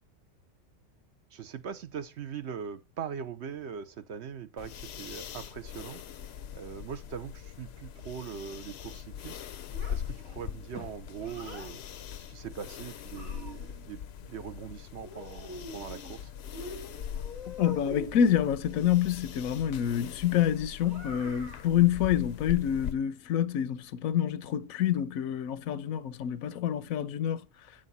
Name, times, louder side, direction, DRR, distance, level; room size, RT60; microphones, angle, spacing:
voice 1, 1.3-16.3, right 7 dB, 60° right, 0.9 m, -41 dB
sound 1, 4.6-22.9, left 9 dB, 60° left, 0.7 m, -42 dB
Child speech kid speaking, 9.7-11.7 12.6-13.9 15.0-16.2 16.5-18.3 20.8-21.7, left 2 dB, 85° right, 4.3 m, -45 dB
voice 2, 17.5-27.4, left 10 dB, 85° left, 1.1 m, -27 dB
8.8 x 6.6 x 4.0 m
omnidirectional pair, 1.4 m